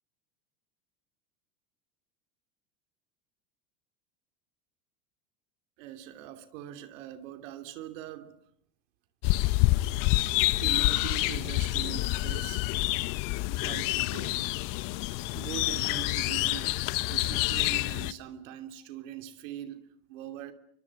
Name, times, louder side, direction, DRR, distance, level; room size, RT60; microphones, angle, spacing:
voice 1, 5.8-8.3 10.6-12.7 13.6-14.5 15.3-20.5, right 11 dB, 70° right, 2.9 m, -42 dB
sound 1, 9.2-18.1, left 19 dB, 55° left, 1.1 m, -27 dB
30.0 x 24.5 x 6.0 m
supercardioid pair, 110°, 39 cm